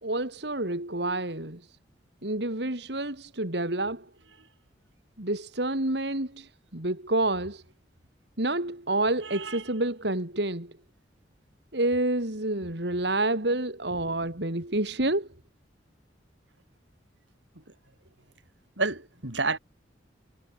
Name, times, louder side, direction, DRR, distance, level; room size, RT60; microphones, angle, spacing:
voice 1, 0.0-1.6 2.2-4.0 5.2-7.6 8.4-10.7 11.7-15.3, right 2 dB, 65° right, 3.2 m, -28 dB
voice 2, 9.2-9.7 18.8-19.6, right 3 dB, 85° right, 7.8 m, -30 dB
head